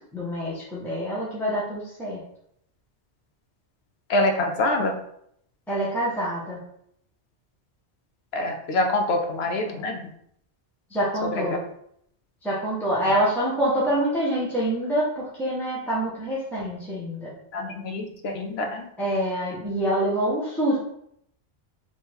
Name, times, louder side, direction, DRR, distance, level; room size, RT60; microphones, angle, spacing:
voice 1, 0.1-2.2 5.7-6.6 10.9-11.6 12.4-17.3 19.0-20.8, right 1 dB, ahead, -8 dB, 1.1 m, -26 dB
voice 2, 4.1-5.0 8.3-10.1 11.3-11.6 17.5-18.9, left 2 dB, 70° left, 4 dB, 0.9 m, -25 dB
3.4 x 3.1 x 4.4 m, 0.71 s
omnidirectional pair, 1.1 m